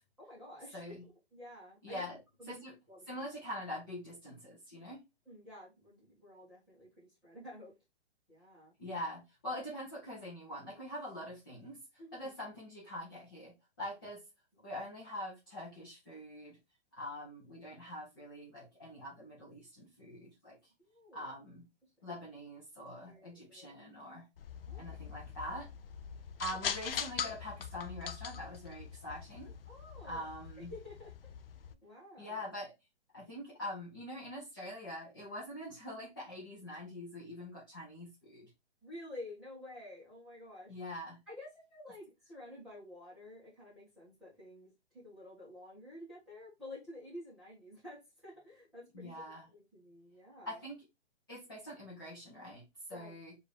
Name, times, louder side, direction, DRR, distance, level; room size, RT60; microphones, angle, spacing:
voice 1, 0.2-2.0 2.4-2.6 2.9-3.3 5.2-7.7 8.3-8.7 12.0-12.3 20.8-21.3 23.1-23.7 24.7-25.0 29.7-30.3 30.6-31.1 31.8-32.4 38.8-40.8 41.3-50.6 52.9-53.1, left 1 dB, ahead, 1.0 m, -51 dB
voice 2, 0.7-1.0 1.8-2.2 2.5-2.7 3.1-5.0 8.8-11.8 12.1-14.2 14.6-16.6 16.9-20.6 21.1-21.7 22.0-24.3 24.7-25.7 26.4-29.5 30.0-30.7 32.2-32.7 33.1-38.5 40.7-41.2 48.9-49.5 50.5-50.8 51.3-53.4, left 1 dB, 20° left, 0.7 m, -44 dB
sound 1, 24.4-31.7, left 7 dB, 60° left, 0.4 m, -42 dB
4.6 x 2.6 x 3.3 m
hypercardioid pair, 180°, 34 cm